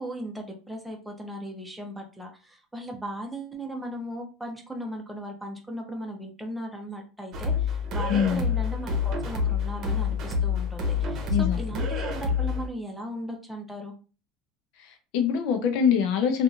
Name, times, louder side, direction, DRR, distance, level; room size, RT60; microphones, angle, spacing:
voice 1, 0.0-13.9, right 1 dB, 5° right, 1 dB, 0.8 m, -37 dB
sound 1, 7.3-12.7, left 5 dB, 50° right, 0.8 m, -27 dB
voice 2, 8.1-8.5 11.3-11.6 14.8-16.4, left 7 dB, 70° left, 6 dB, 0.7 m, -24 dB
2.8 x 2.5 x 2.5 m, 0.34 s
supercardioid pair, 115°, 0 cm